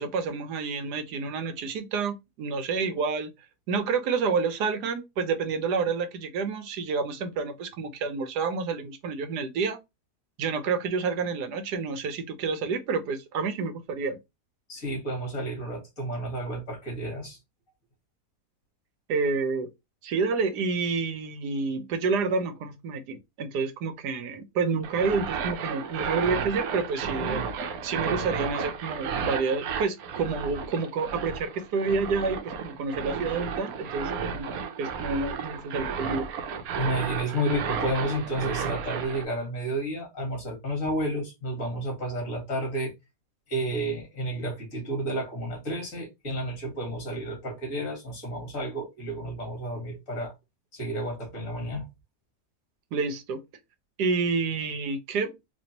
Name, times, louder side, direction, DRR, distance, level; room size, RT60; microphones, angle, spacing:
voice 1, 0.0-3.3 3.7-9.8 10.4-14.2 19.1-19.7 20.0-27.4 27.8-34.5 34.8-36.3 52.9-53.4 54.0-55.3, right 4 dB, 90° right, 1.4 m, -29 dB
voice 2, 14.7-17.4 36.8-42.9 43.5-50.3 50.7-51.9, right 1 dB, 55° left, 2.1 m, -31 dB
sound 1, 24.8-39.3, right 6 dB, 70° right, 1.1 m, -33 dB
4.3 x 2.6 x 2.8 m
omnidirectional pair, 1.7 m